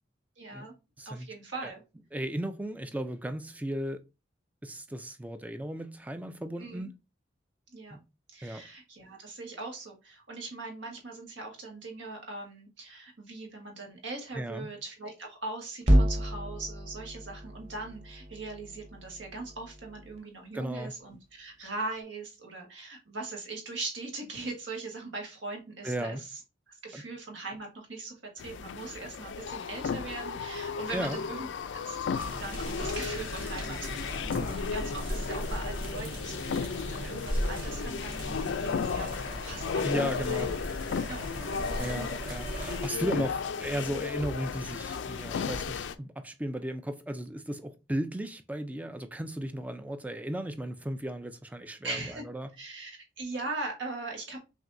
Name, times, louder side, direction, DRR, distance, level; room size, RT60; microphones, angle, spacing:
voice 1, 0.4-0.7 1.0-1.8 6.6-6.9 7.7-8.0 8.3-26.4 26.7-40.5 41.1-41.9 51.8-52.2 52.6-54.4, right 3 dB, 75° right, 1.4 m, -40 dB
voice 2, 2.1-4.0 4.6-6.9 7.9-8.0 8.4-8.6 14.3-14.7 20.5-20.9 25.8-26.2 26.9-27.0 30.9-31.2 34.3-34.6 39.8-40.5 41.8-52.5, right 1 dB, 10° right, 0.3 m, -35 dB
sound 1, 15.8-20.2, equal, 35° right, 0.7 m, -29 dB
sound 2, 28.4-45.9, left 6 dB, 75° left, 0.4 m, -34 dB
sound 3, 32.1-42.9, right 1 dB, 50° right, 1.7 m, -38 dB
5.8 x 2.7 x 2.6 m
head